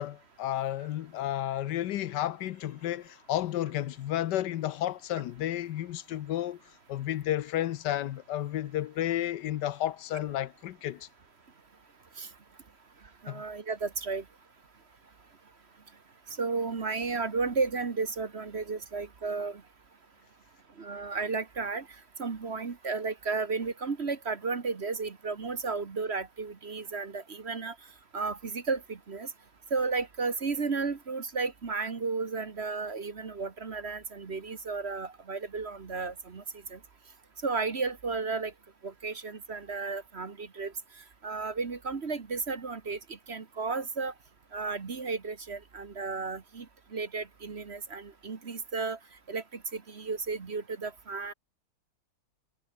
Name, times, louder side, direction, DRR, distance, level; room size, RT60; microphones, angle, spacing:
voice 1, 0.0-6.6 6.9-11.1 13.3-13.4, left 12 dB, 80° left, 1.4 m, -32 dB
voice 2, 13.2-14.2 16.4-19.6 20.8-21.9 22.2-27.7 28.1-29.3 29.7-36.4 36.7-36.8 37.4-38.5 38.8-40.7 41.2-44.1 44.5-46.7 46.9-49.0 49.3-51.3, right 4 dB, 40° right, 1.6 m, -33 dB
omnidirectional pair, 1.8 m